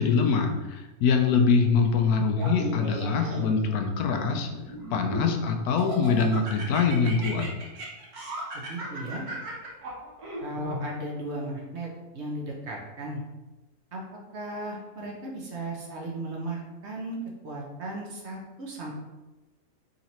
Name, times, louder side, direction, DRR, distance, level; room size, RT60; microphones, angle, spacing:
voice 1, 0.0-4.5 4.9-7.5, left 5 dB, 90° left, 4 dB, 1.1 m, -24 dB
Laughter, 2.3-3.7 4.3-5.3 5.8-10.8, right 1 dB, 75° right, 1.6 m, -37 dB
voice 2, 8.5-9.2 10.4-11.9 12.1-13.2 13.9-14.0 14.3-17.2 17.4-18.9, right 1 dB, 55° right, -1 dB, 1.0 m, -36 dB
3.9 x 3.1 x 4.1 m, 1.1 s
omnidirectional pair, 1.6 m